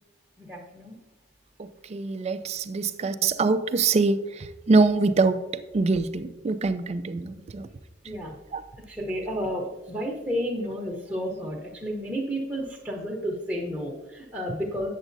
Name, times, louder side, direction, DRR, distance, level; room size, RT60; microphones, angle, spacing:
voice 1, 0.4-0.9 8.0-8.3 8.9-14.9, equal, 5° right, -5 dB, 0.8 m, -31 dB
voice 2, 1.6-5.4 5.7-7.7 8.5-8.6, right 3 dB, 35° right, 11 dB, 0.3 m, -24 dB
8.1 x 7.2 x 2.6 m, 1.1 s
head